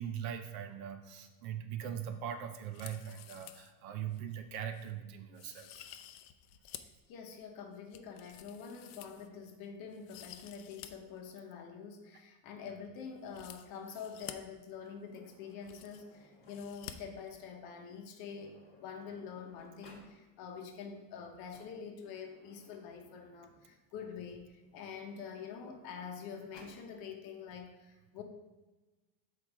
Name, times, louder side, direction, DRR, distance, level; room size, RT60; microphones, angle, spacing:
voice 1, 0.0-6.0, right 9 dB, 50° right, 7 dB, 0.5 m, -41 dB
sound 1, 2.6-3.7 4.1-4.2 4.7-4.9 5.3-7.0 7.4-9.5 9.9-10.9 11.2-11.3 13.2-14.3 15.2-15.3 15.4-16.2 16.5-16.9 17.2-17.3, left 13 dB, 70° left, 0.6 m, -51 dB
voice 2, 7.1-28.2, left 6 dB, 50° left, 4 dB, 0.9 m, -46 dB
Sliding door, 14.1-16.9 17.9-18.0 18.3-20.1 21.2-23.8 24.6-26.8, left 1 dB, 20° left, 1.4 m, -61 dB
6.4 x 4.5 x 3.5 m, 1.2 s
cardioid pair, 160°, 48 cm